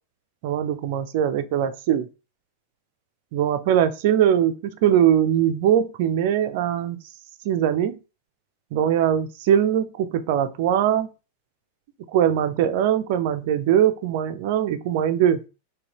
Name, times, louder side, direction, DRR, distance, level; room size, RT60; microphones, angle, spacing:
voice 1, 0.4-2.1 3.3-7.0 7.5-8.0 8.7-11.1 12.1-15.4, right 10 dB, 50° right, 0.4 m, -21 dB
3.8 x 2.7 x 2.9 m
figure-of-eight pair, 90°, 0 cm